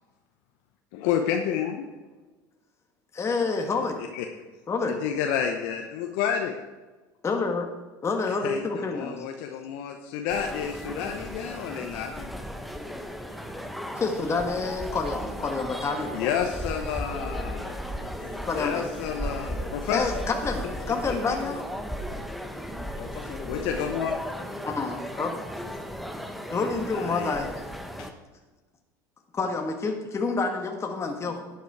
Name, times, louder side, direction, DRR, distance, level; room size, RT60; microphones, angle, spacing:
voice 1, 0.9-1.8 4.1-4.3 4.9-6.5 8.4-12.3 13.3-13.6 16.1-17.7 18.5-20.2 23.5-24.1 26.9-27.4, left 8 dB, 70° left, 4 dB, 1.0 m, -30 dB
voice 2, 3.1-4.0 4.7-4.9 7.2-7.6 8.0-9.2 13.9-16.2 18.5-18.8 19.9-21.7 24.6-25.3 26.5-27.5 29.3-31.4, left 4 dB, 25° left, 3 dB, 1.5 m, -28 dB
sound 1, 10.3-28.1, equal, ahead, 1.1 m, -36 dB
voice 3, 17.0-19.7 20.8-20.9 22.9-24.7 25.8-25.9 29.4-29.5, left 5 dB, 55° left, 2 dB, 2.7 m, -43 dB
11.0 x 8.3 x 4.8 m, 1.2 s
hypercardioid pair, 85°, 10 cm